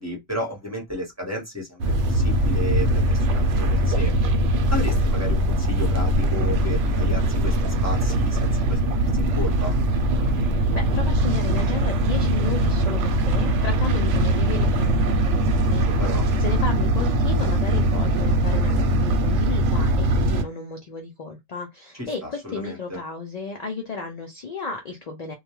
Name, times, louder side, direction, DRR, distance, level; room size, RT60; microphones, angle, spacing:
voice 1, 0.0-4.1 4.7-9.7 15.8-16.2 21.9-23.0, left 1 dB, 15° right, 0.8 m, -33 dB
sound 1, 1.8-20.4, right 1 dB, 75° right, 0.9 m, -21 dB
voice 2, 10.3-16.0 16.4-25.3, left 4 dB, 60° left, 0.4 m, -34 dB
2.3 x 2.2 x 2.9 m
omnidirectional pair, 1.3 m